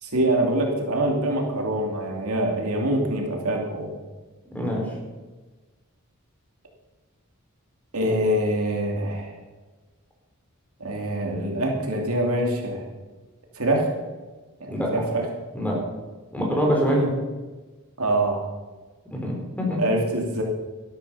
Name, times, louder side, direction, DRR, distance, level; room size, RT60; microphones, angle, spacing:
voice 1, 0.0-3.9 7.9-9.3 10.8-12.9 13.6-13.9 14.6-15.3 18.0-18.5 19.8-20.4, right 1 dB, 70° right, 1 dB, 2.7 m, -24 dB
voice 2, 14.7-15.1 15.5-15.8 16.3-17.1 19.1-19.8, equal, 5° left, -2 dB, 4.0 m, -24 dB
13.0 x 12.0 x 5.7 m, 1.3 s
head